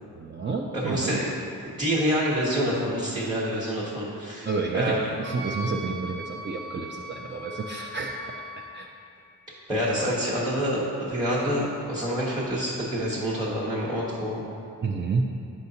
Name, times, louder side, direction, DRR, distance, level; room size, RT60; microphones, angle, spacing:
voice 1, 0.1-1.2 4.4-8.1 8.7-8.9 14.8-15.2, right 4 dB, 35° right, -1 dB, 0.4 m, -29 dB
voice 2, 0.7-1.3 1.6-5.1 9.7-14.4, equal, 10° right, -8 dB, 1.1 m, -27 dB
Wind instrument woodwind instrument, 5.2-8.9, equal, 65° right, 0.9 m, -39 dB
8.1 x 5.6 x 2.8 m, 2.7 s
wide cardioid pair, 90°, 35 cm